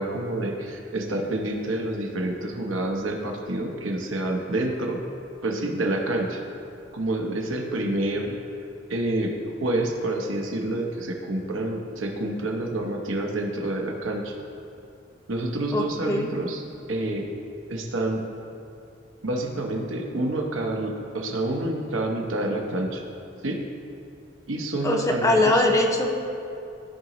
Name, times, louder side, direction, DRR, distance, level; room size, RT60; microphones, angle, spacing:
voice 1, 0.0-5.0 5.4-6.4 6.9-8.3 8.9-14.3 15.3-16.6 16.9-17.2 17.7-18.2 19.2-23.0 23.4-23.6 24.5-25.6, right 1 dB, 85° right, 1 dB, 1.0 m, -28 dB
voice 2, 15.7-16.3 24.8-26.1, left 1 dB, 15° left, 2 dB, 0.6 m, -21 dB
14.0 x 4.9 x 3.1 m, 2.7 s
head